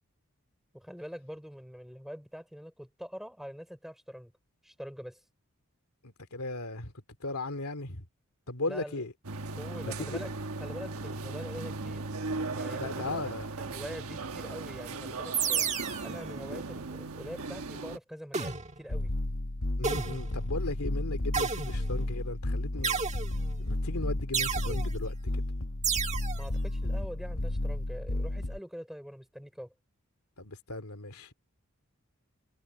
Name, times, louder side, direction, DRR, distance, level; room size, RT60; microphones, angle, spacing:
voice 1, 0.7-4.3 4.6-5.2 8.7-9.1 9.5-10.3 10.6-12.0 12.5-13.1 13.6-15.7 16.0-19.1 26.3-29.7, equal, ahead, 5.6 m, -44 dB
voice 2, 6.0-6.9 7.2-8.1 8.5-9.1 9.8-10.2 12.8-13.5 19.8-23.0 23.6-25.5 30.4-31.3, left 2 dB, 85° left, 2.6 m, -37 dB
sound 1, 9.2-18.0, right 3 dB, 80° right, 1.2 m, -37 dB
sound 2, 15.3-16.2 18.3-18.9 19.8-20.4 21.3-22.1 22.8-23.6 24.3-24.9 25.8-26.4, right 6 dB, 30° right, 1.5 m, -31 dB
sound 3, 18.9-28.6, left 1 dB, 65° left, 1.2 m, -33 dB
head